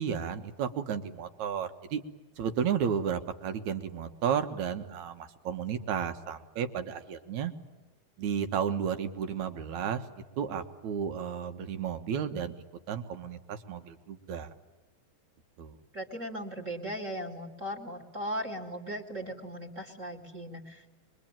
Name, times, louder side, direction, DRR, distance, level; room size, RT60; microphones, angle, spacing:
voice 1, 0.0-2.0 2.4-7.5 8.2-12.5 12.9-14.5 15.6-15.7, right 8 dB, 70° right, 7 dB, 2.8 m, -33 dB
voice 2, 15.9-20.9, equal, 25° right, 3 dB, 2.7 m, -38 dB
24.0 x 23.5 x 9.0 m, 1.2 s
omnidirectional pair, 3.5 m